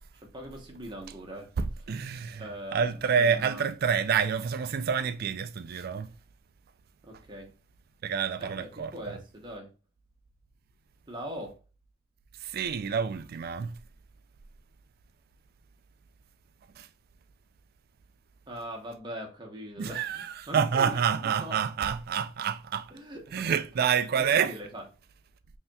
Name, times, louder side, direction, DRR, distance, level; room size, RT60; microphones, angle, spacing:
voice 1, 0.3-1.5 2.4-3.6 7.0-7.5 8.4-9.7 11.1-11.6 18.5-21.6 22.9-23.4 24.2-24.9, equal, 20° right, 1.0 m, -41 dB
voice 2, 1.6-2.4 2.7-6.1 8.0-9.2 12.4-13.7 16.8-16.9 19.8-22.9 23.3-24.5, right 7 dB, 50° right, 0.3 m, -28 dB
5.5 x 2.9 x 2.3 m
head